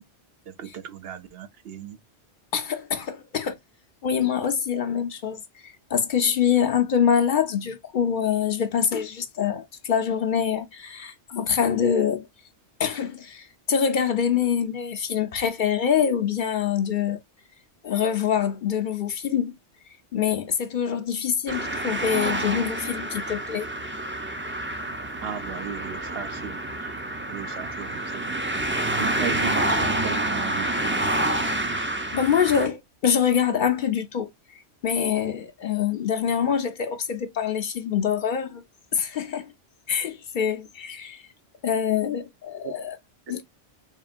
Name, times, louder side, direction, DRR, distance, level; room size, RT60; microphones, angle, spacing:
voice 1, 0.5-2.0 25.2-26.6 27.3-28.4 29.0-31.1 42.6-42.7, right 8 dB, 65° right, 0.8 m, -36 dB
voice 2, 2.5-3.5 4.0-12.3 12.8-17.2 17.8-19.6 20.1-23.7 32.1-38.6 38.9-39.5 39.9-41.2 41.6-43.0 43.3-43.4, left 8 dB, 55° left, 0.6 m, -25 dB
sound 1, 21.5-32.7, right 1 dB, 15° right, 0.4 m, -28 dB
3.6 x 3.5 x 2.4 m
omnidirectional pair, 1.2 m